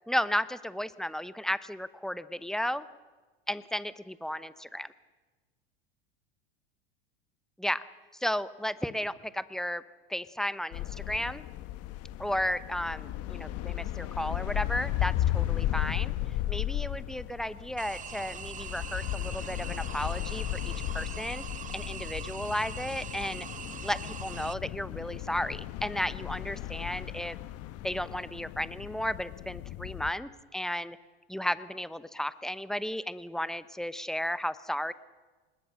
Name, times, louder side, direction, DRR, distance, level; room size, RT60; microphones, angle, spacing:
voice 1, 0.1-2.9 3.5-4.9 7.6-7.8 8.2-9.8 10.1-11.4 12.2-16.1 16.5-21.5 21.7-23.5 23.8-27.4 27.8-31.0 31.3-34.9, equal, ahead, 15 dB, 0.9 m, -34 dB
sound 1, 10.7-30.1, left 14 dB, 50° left, 1.4 m, -35 dB
sound 2, 17.8-24.5, right 8 dB, 25° right, 0.8 m, -43 dB
25.5 x 20.5 x 6.6 m, 1.3 s
hypercardioid pair, 90°, 30 cm